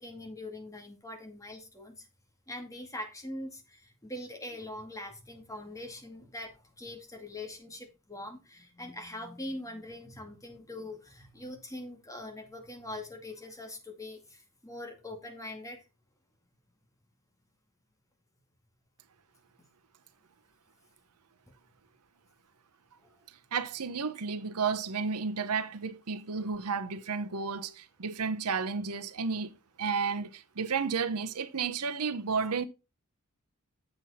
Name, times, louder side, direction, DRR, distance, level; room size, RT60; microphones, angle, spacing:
voice 1, 0.0-2.1 2.5-15.8, left 1 dB, 15° left, 2.1 m, -43 dB
voice 2, 23.5-32.6, right 5 dB, 85° right, 0.9 m, -32 dB
8.0 x 7.6 x 4.2 m
head